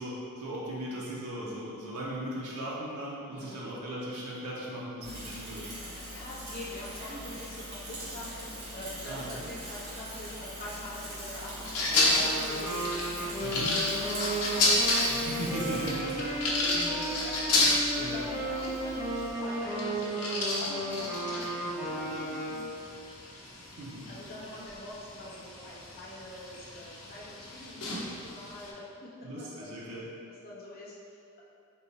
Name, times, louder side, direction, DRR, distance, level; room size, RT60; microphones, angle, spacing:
voice 1, 0.0-5.6 9.1-9.5 13.4-13.8 15.1-16.1 16.7-16.9 17.6-18.2 23.6-24.1 29.2-30.1, right 1 dB, 80° right, -6 dB, 0.6 m, -38 dB
voice 2, 3.3-3.7 6.1-13.1 13.3-22.7 24.1-29.7 30.3-31.4, left 1 dB, 45° left, -6 dB, 0.6 m, -44 dB
Bicycle / Mechanisms, 5.0-19.3, equal, 45° right, 1.2 m, -42 dB
sound 1, 11.6-28.7, left 2 dB, 85° left, 0.7 m, -32 dB
sound 2, 11.9-22.9, right 1 dB, 10° right, 0.8 m, -34 dB
3.6 x 2.0 x 3.9 m, 2.4 s
head